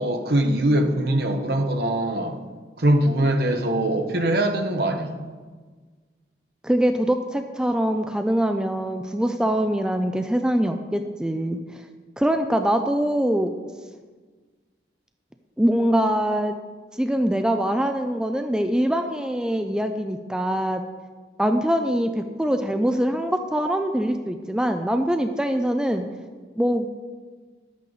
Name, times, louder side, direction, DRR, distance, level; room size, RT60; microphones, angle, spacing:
voice 1, 0.0-2.4 2.8-5.1, right 1 dB, 60° right, 6 dB, 1.0 m, -22 dB
voice 2, 6.6-11.6 12.2-13.5 15.6-16.5 17.0-20.8 21.4-26.0 26.6-26.9, equal, 5° right, 6 dB, 0.4 m, -23 dB
11.0 x 8.3 x 3.9 m, 1.4 s
head